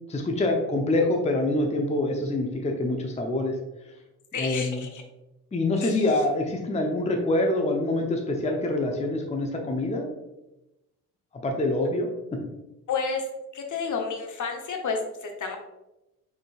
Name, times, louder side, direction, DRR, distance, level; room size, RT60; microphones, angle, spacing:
voice 1, 0.1-3.5 4.3-4.8 5.5-10.1 11.4-12.1, left 2 dB, 15° left, 3 dB, 0.7 m, -25 dB
voice 2, 4.3-5.0 5.8-6.0 12.9-13.2 13.5-15.6, left 5 dB, 40° left, 3 dB, 0.9 m, -30 dB
5.1 x 3.9 x 2.3 m, 0.95 s
figure-of-eight pair, 40°, 45 cm